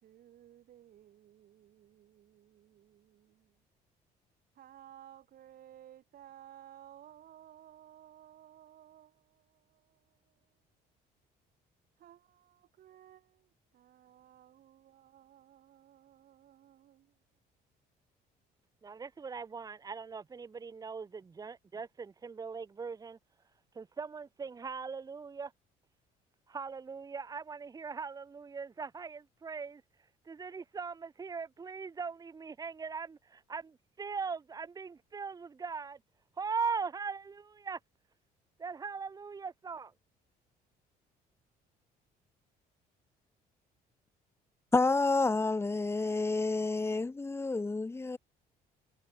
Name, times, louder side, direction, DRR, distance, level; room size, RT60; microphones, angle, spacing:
voice 1, 0.0-3.6 4.5-10.5 12.0-17.2, right 11 dB, 60° right, 2.6 m, -57 dB
voice 2, 18.8-23.2 23.8-25.5 26.5-29.8 30.3-36.0 36.4-37.8 38.6-39.9, right 5 dB, 20° right, 0.9 m, -40 dB
voice 3, 44.7-48.2, left 3 dB, 15° left, 0.9 m, -29 dB
cardioid pair, 110°, 17 cm